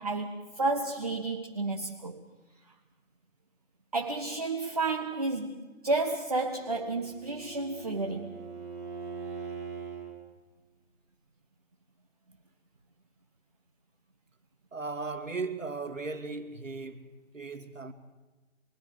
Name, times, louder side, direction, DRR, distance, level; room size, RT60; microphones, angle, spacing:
voice 1, 0.0-2.2 3.9-8.4, right 3 dB, 30° right, 1.3 m, -31 dB
Bowed string instrument, 6.4-10.1, right 5 dB, 15° right, 2.0 m, -42 dB
voice 2, 14.7-17.9, right 3 dB, 90° right, 3.1 m, -37 dB
28.0 x 21.0 x 6.6 m
figure-of-eight pair, 175°, 37 cm